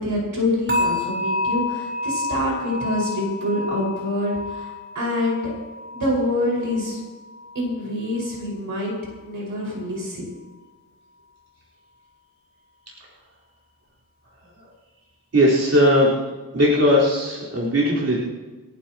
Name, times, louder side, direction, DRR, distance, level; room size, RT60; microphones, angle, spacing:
voice 1, 0.0-5.5 5.9-7.0 7.6-8.9 9.2-10.3, left 1 dB, 70° right, -3 dB, 5.2 m, -26 dB
sound 1, 0.7-7.8 8.1-8.4 8.9-9.1, left 2 dB, 30° right, 4.2 m, -29 dB
voice 2, 15.3-16.1 16.5-18.2, equal, 50° right, -8 dB, 4.2 m, -18 dB
29.5 x 11.5 x 3.0 m, 1.3 s
wide cardioid pair, 140°, 34 cm